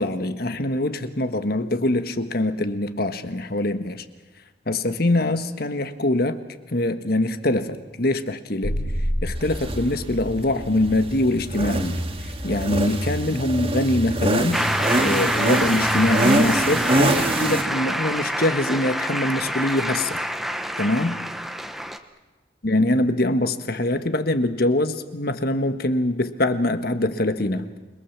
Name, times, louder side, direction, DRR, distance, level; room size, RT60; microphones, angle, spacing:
voice 1, 0.0-4.0 4.7-6.4 6.7-8.8 9.2-14.7 14.9-20.2 20.8-21.3 22.6-27.7, left 1 dB, 50° left, 10 dB, 1.5 m, -23 dB
sound 1, 8.6-11.1, equal, 85° left, 3.2 m, -29 dB
sound 2, 9.5-17.6, right 1 dB, 30° right, 2.0 m, -25 dB
Shout / Cheering / Applause, 14.5-22.0, equal, ahead, 1.0 m, -26 dB
27.5 x 22.5 x 7.4 m, 1.2 s
head